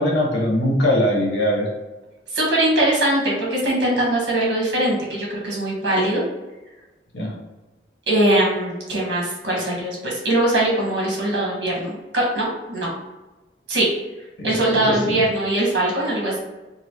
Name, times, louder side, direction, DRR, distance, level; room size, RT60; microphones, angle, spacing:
voice 1, 0.0-1.7 7.1-7.3 14.4-14.5 14.9-15.2, left 1 dB, 85° left, -2 dB, 1.1 m, -21 dB
voice 2, 2.3-6.2 8.1-12.9 13.7-13.9 14.4-16.4, right 1 dB, 80° right, -3 dB, 1.2 m, -21 dB
3.9 x 2.0 x 2.9 m, 1.1 s
head